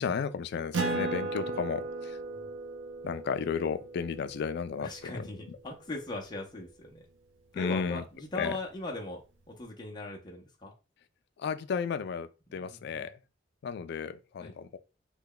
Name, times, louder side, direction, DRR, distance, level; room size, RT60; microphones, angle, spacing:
voice 1, 0.0-1.8 3.0-5.2 7.5-8.0 8.4-8.5 11.4-13.1 13.6-14.8, left 6 dB, 60° left, 0.3 m, -33 dB
Acoustic guitar, 0.7-5.7, right 3 dB, 80° right, 0.5 m, -36 dB
voice 2, 4.8-7.0 7.5-10.7 12.5-13.1 14.4-14.5, left 2 dB, 25° left, 0.6 m, -40 dB
3.3 x 2.2 x 3.7 m
head